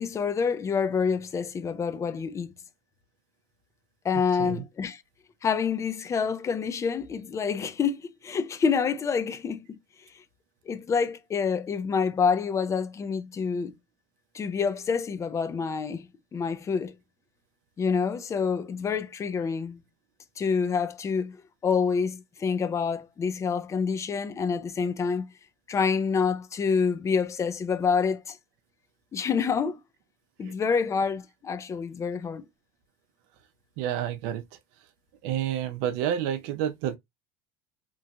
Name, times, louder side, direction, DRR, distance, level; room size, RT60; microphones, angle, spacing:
voice 1, 0.0-2.6 4.0-5.0 5.4-9.8 10.1-10.2 10.7-13.7 14.3-17.0 17.8-19.9 20.4-25.3 25.7-28.4 29.1-29.8 30.4-32.4, left 6 dB, 25° left, 0.5 m, -27 dB
voice 2, 33.8-34.4 35.2-37.0, right 10 dB, 65° right, 0.6 m, -29 dB
3.0 x 2.7 x 2.2 m
supercardioid pair, 100°, 12 cm